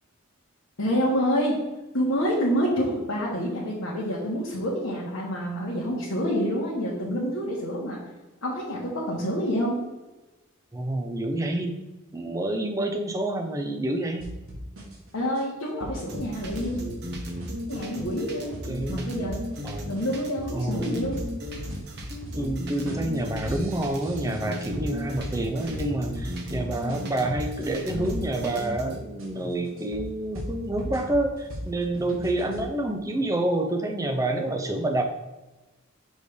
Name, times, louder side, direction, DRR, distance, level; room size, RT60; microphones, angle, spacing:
voice 1, 0.8-1.6 1.9-8.0 8.4-9.8 15.1-16.8 17.7-18.5 18.9-19.4 19.9-21.2, equal, 80° left, -6 dB, 1.4 m, -27 dB
voice 2, 10.7-11.8 12.1-14.3 18.7-19.1 19.6-19.9 20.5-20.8 22.4-35.0, right 1 dB, 15° right, 4 dB, 0.6 m, -28 dB
sound 1, 14.2-28.7 29.2-32.7, equal, 75° right, 1.5 m, -38 dB
sound 2, 16.1-29.0, equal, 50° right, 1.0 m, -36 dB
6.3 x 3.4 x 5.1 m, 1.1 s
head